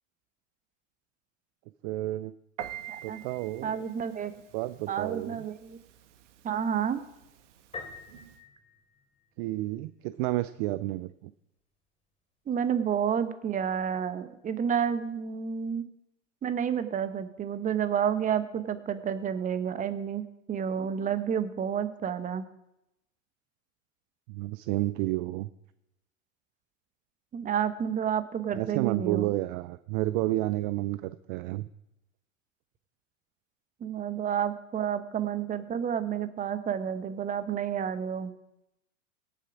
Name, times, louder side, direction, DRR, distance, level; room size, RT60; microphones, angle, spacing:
voice 1, 1.8-2.3 3.0-3.8 4.5-5.4 9.4-11.3 24.3-25.5 28.5-31.7, right 17 dB, 40° right, 15 dB, 0.5 m, -31 dB
Piano, 2.6-8.4, right 11 dB, 60° right, 1.3 m, -47 dB
voice 2, 2.9-3.2 3.6-4.3 4.9-5.8 6.4-7.0 12.5-15.8 16.4-20.2 20.5-22.4 27.3-29.3 33.8-38.3, right 8 dB, 20° right, 12 dB, 1.0 m, -30 dB
Piano 2, 7.7-9.6, left 4 dB, 15° left, 3.1 m, -45 dB
17.0 x 7.0 x 5.0 m, 0.87 s
hypercardioid pair, 100°, 40 cm